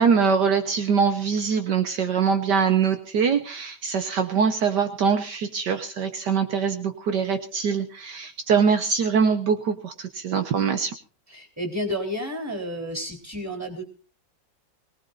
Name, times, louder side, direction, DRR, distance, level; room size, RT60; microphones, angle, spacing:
voice 1, 0.0-10.9, right 6 dB, 70° right, 8 dB, 1.7 m, -23 dB
voice 2, 11.3-13.8, equal, 10° right, 4 dB, 3.8 m, -31 dB
23.0 x 18.5 x 2.6 m, 0.35 s
omnidirectional pair, 2.0 m